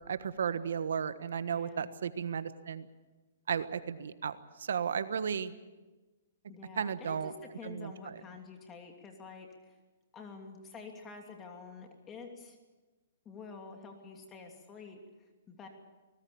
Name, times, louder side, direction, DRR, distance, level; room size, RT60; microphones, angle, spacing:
voice 1, 0.1-2.9 3.5-5.5 6.8-7.3 7.6-7.9, right 7 dB, 75° right, 12 dB, 1.4 m, -34 dB
voice 2, 1.5-1.9 6.5-9.8 10.1-12.6 13.2-15.7, left 4 dB, 20° left, 3 dB, 2.8 m, -48 dB
24.0 x 19.5 x 7.1 m, 1.2 s
hypercardioid pair, 150°, 0 cm